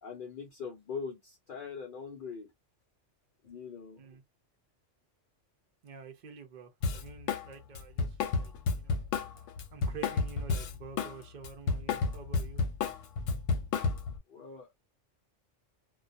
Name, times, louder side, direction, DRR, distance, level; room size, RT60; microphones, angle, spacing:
voice 1, 0.0-2.5 3.4-4.0 14.3-14.7, left 5 dB, 60° left, 0.5 m, -42 dB
voice 2, 5.8-9.0 9.3-12.6, right 6 dB, 55° right, 0.5 m, -49 dB
Drum kit, 6.8-7.5 7.7-11.1 11.4-14.2, left 4 dB, 85° left, 0.9 m, -31 dB
2.2 x 2.2 x 2.5 m
omnidirectional pair, 1.3 m